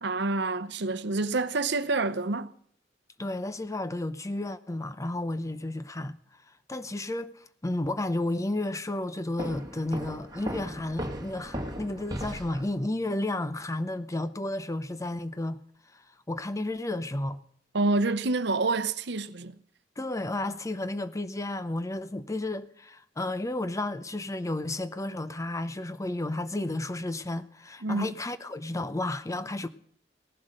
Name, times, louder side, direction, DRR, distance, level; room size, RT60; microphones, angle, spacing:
voice 1, 0.0-2.5 17.7-19.6 27.8-28.1, right 3 dB, 65° right, 0.8 m, -27 dB
voice 2, 3.2-6.2 6.7-7.3 7.6-15.6 15.9-16.0 16.3-17.4 20.0-29.7, left 1 dB, 15° left, 0.7 m, -32 dB
Walk footsteps, 9.4-12.7, equal, 20° right, 1.9 m, -37 dB
17.5 x 11.5 x 6.5 m
head